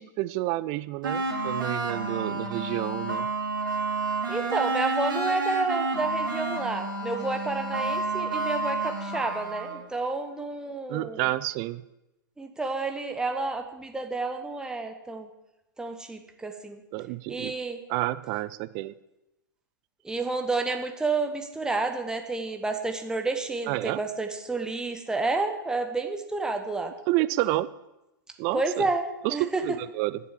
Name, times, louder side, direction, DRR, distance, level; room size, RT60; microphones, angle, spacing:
voice 1, 0.0-3.3 10.9-11.9 16.9-17.5 17.9-18.9 23.7-24.0 27.1-27.7 28.4-28.9 29.2-30.2, right 17 dB, 35° right, 16 dB, 0.4 m, -29 dB
sound 1, 1.0-9.8, right 3 dB, 70° right, 2.4 m, -30 dB
voice 2, 4.3-11.2 12.4-15.3 15.8-16.8 17.3-17.8 20.0-26.9 28.5-29.6, right 3 dB, 5° right, 5 dB, 1.1 m, -30 dB
10.5 x 6.9 x 7.2 m, 0.93 s
figure-of-eight pair, 105°, 11 cm